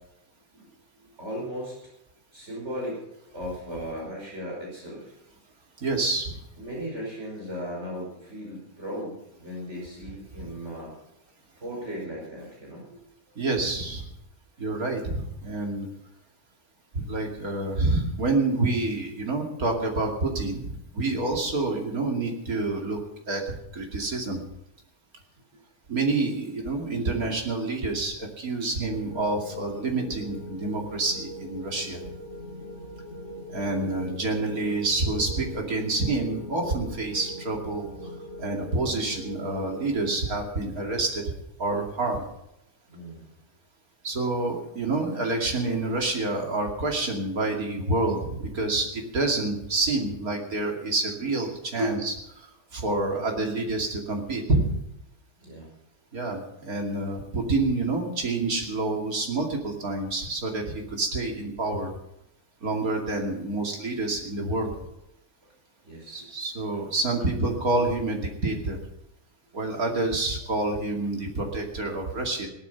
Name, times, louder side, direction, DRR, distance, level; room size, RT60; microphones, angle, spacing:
voice 1, 0.9-1.7 2.3-3.0 3.3-5.2 6.6-10.9 11.6-13.0 33.7-34.0 42.9-43.4 51.8-51.9 55.4-55.7 65.4-65.5 65.8-66.3 66.7-66.8 69.8-69.9, equal, 50° right, -3 dB, 5.6 m, -36 dB
voice 2, 5.8-6.4 13.4-14.1 14.6-15.9 16.9-23.0 23.3-24.4 25.9-32.0 33.5-38.1 38.4-41.3 41.6-42.2 44.0-52.5 52.7-54.7 56.1-61.9 62.6-64.7 66.1-68.8 69.5-72.5, right 2 dB, 85° right, 1 dB, 3.0 m, -28 dB
sound 1, 28.9-40.2, left 1 dB, 45° left, 6.1 m, -41 dB
17.5 x 12.0 x 5.8 m, 0.84 s
omnidirectional pair, 1.5 m